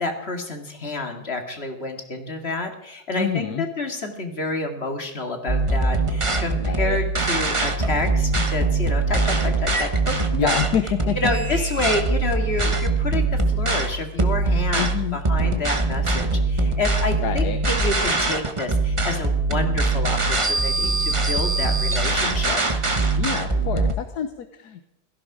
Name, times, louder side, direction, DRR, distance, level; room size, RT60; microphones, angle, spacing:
voice 1, 0.0-10.2 10.4-10.6 11.2-22.6, left 2 dB, 40° left, 5 dB, 2.4 m, -29 dB
voice 2, 3.1-3.7 6.6-7.0 10.3-11.2 14.7-15.2 17.2-17.6 23.2-24.8, left 8 dB, 80° left, 9 dB, 1.5 m, -27 dB
sound 1, 5.5-23.9, right 3 dB, 20° right, 1.2 m, -22 dB
17.0 x 15.0 x 4.9 m, 0.86 s
omnidirectional pair, 1.7 m